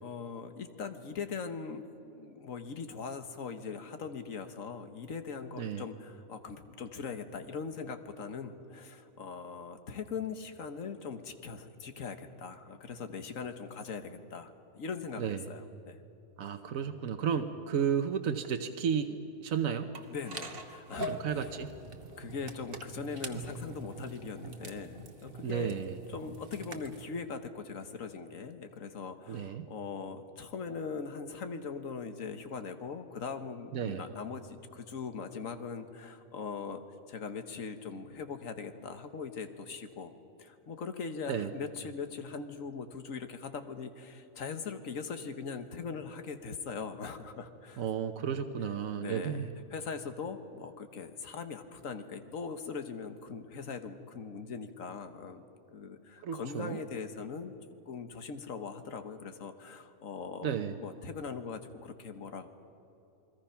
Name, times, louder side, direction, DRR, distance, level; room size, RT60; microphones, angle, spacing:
voice 1, 0.0-1.8 2.1-16.0 20.1-21.5 22.2-25.8 26.1-40.1 40.4-47.9 49.0-57.5 57.9-60.5 60.8-62.5, left 5 dB, 80° left, 8 dB, 1.6 m, -41 dB
voice 2, 16.4-19.9 21.1-21.7 25.4-26.0 29.3-29.7 33.7-34.0 41.3-41.5 47.8-49.5 56.2-56.8 60.4-60.8, right 7 dB, 85° right, 7 dB, 1.3 m, -33 dB
sound 1, 19.9-27.0, right 1 dB, 45° right, 1.4 m, -43 dB
29.0 x 21.0 x 5.8 m, 2.9 s
omnidirectional pair, 1.4 m